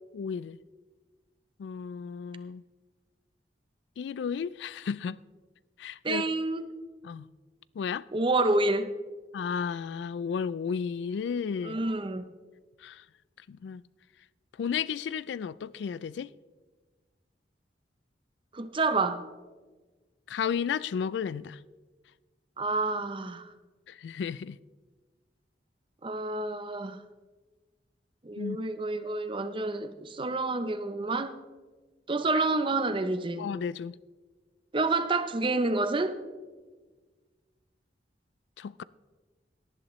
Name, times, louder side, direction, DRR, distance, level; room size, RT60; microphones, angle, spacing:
voice 1, 0.1-0.6 1.6-2.6 4.0-5.2 5.8-6.2 7.0-7.3 7.8-8.0 9.3-11.8 12.8-13.0 13.5-13.8 14.6-16.3 20.3-21.6 23.9-24.6 28.4-28.6 33.4-34.0 38.6-38.8, left 6 dB, 75° left, 0.3 m, -33 dB
voice 2, 6.0-6.7 8.1-8.9 11.6-12.3 18.5-19.2 22.6-23.5 26.0-27.0 28.2-31.4 32.1-33.5 34.7-36.2, right 2 dB, 30° right, 0.6 m, -28 dB
18.0 x 11.0 x 3.1 m
head